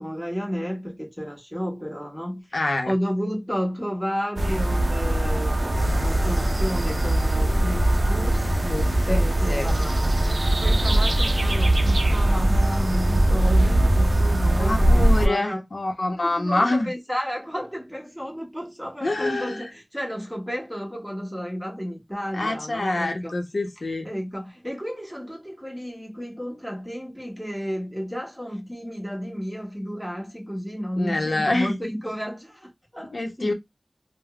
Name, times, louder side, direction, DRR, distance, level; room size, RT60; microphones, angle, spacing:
voice 1, 0.0-2.4 2.9-8.5 9.1-15.6 16.1-23.3 24.0-33.5, equal, ahead, 1.2 m, -32 dB
voice 2, 2.5-2.9 8.7-9.7 14.6-16.9 19.0-19.6 22.3-24.1 31.0-31.8 33.1-33.5, left 2 dB, 90° left, 0.7 m, -26 dB
sound 1, 4.4-15.3, right 1 dB, 65° right, 0.4 m, -21 dB
sound 2, 5.7-11.6, equal, 20° right, 1.3 m, -31 dB
3.3 x 2.0 x 2.2 m
wide cardioid pair, 50°, 0 cm